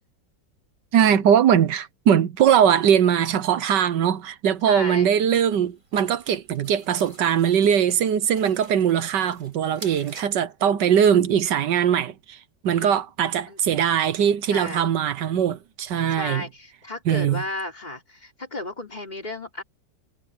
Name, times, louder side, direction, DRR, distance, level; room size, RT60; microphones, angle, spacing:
voice 1, 0.9-12.4 12.6-16.4 17.1-17.4, right 8 dB, 70° right, 1.5 m, -21 dB
voice 2, 4.6-5.1 12.7-12.9 13.5-13.6 14.5-14.9 16.1-19.6, left 2 dB, 20° left, 4.0 m, -34 dB
sound 1, 4.7-10.3, right 2 dB, 40° right, 7.5 m, -47 dB
omnidirectional pair, 2.0 m